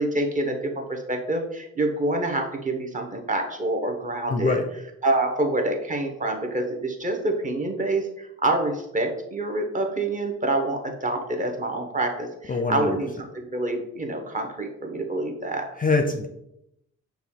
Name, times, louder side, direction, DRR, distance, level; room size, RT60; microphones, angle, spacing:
voice 1, 0.0-4.6 5.0-15.7, right 2 dB, 25° right, 2 dB, 0.8 m, -27 dB
voice 2, 4.3-4.6 12.5-13.0 15.8-16.3, left 3 dB, 30° left, 4 dB, 0.5 m, -23 dB
5.9 x 2.3 x 3.5 m, 0.82 s
cardioid pair, 90°, 30 cm